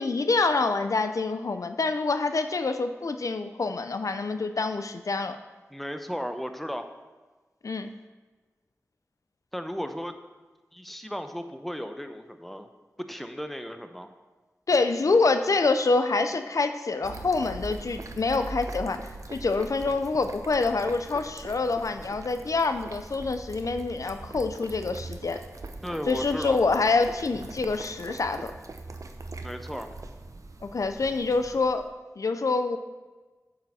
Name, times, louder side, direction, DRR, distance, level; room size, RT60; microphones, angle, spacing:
voice 1, 0.0-5.4 7.6-7.9 14.7-25.4 26.1-28.5 30.6-31.9 32.2-32.8, left 3 dB, 80° left, 8 dB, 0.5 m, -26 dB
voice 2, 5.7-6.9 9.5-10.1 10.7-12.7 13.1-14.1 25.8-26.6 29.4-29.9, equal, ahead, 7 dB, 0.7 m, -35 dB
sound 1, 17.0-31.8, right 2 dB, 75° right, 0.7 m, -41 dB
8.8 x 6.6 x 4.2 m, 1.3 s
wide cardioid pair, 45°, 6 cm